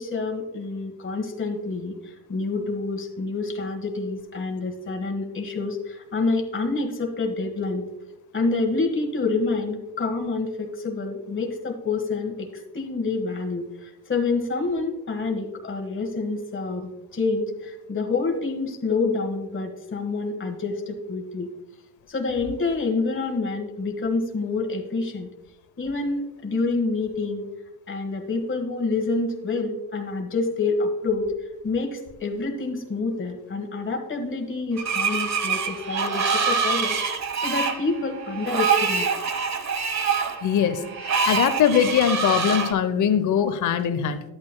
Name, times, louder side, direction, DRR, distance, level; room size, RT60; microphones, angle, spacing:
voice 1, 0.0-7.8 8.3-21.5 22.1-25.3 25.8-27.5 27.9-31.3 31.6-37.0 37.4-39.1, left 3 dB, 25° left, 1 dB, 1.4 m, -27 dB
Screech, 34.8-42.7, right 5 dB, 40° right, 1.1 m, -25 dB
voice 2, 40.4-40.8 41.3-44.2, left 8 dB, 45° left, 10 dB, 0.8 m, -21 dB
11.5 x 8.8 x 2.2 m, 0.99 s
hypercardioid pair, 65°, 45 cm